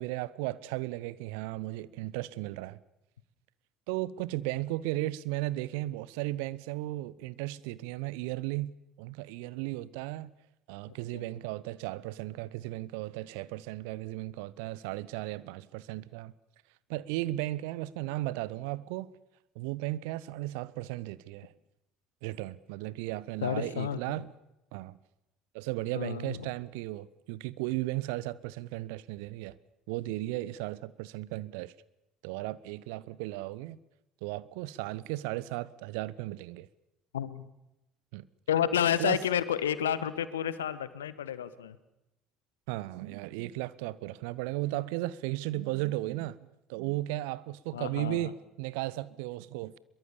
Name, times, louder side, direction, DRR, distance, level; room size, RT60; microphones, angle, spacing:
voice 1, 0.0-2.8 3.9-8.7 9.0-10.3 10.7-16.3 16.9-19.1 19.5-21.5 22.2-24.3 24.7-25.0 25.5-29.6 29.9-31.7 32.2-33.8 34.2-36.7 38.1-38.3 39.0-39.2 42.7-46.4 46.7-49.8, right 17 dB, 65° right, 0.8 m, -35 dB
voice 2, 10.9-11.3 23.4-24.0 25.9-26.5 37.1-37.5 38.5-41.8 47.7-48.3, left 9 dB, 75° left, 1.3 m, -30 dB
23.0 x 22.5 x 7.1 m
figure-of-eight pair, 60°, 0 cm